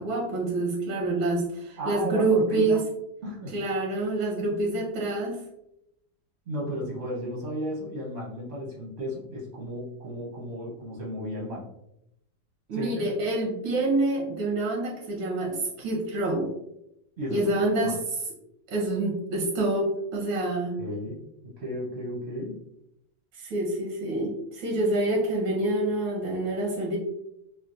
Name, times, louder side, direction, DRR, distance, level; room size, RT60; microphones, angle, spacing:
voice 1, 0.0-2.8 3.5-5.4 12.7-16.5 17.3-18.0 18.7-20.8 23.3-27.0, right 2 dB, 90° right, -1 dB, 1.5 m, -27 dB
voice 2, 1.8-2.9 3.2-3.5 6.5-11.7 12.7-13.1 17.2-17.4 17.8-17.9 20.8-21.2 21.4-22.6, equal, 55° right, -4 dB, 0.7 m, -34 dB
3.8 x 2.3 x 2.5 m, 0.81 s
omnidirectional pair, 2.0 m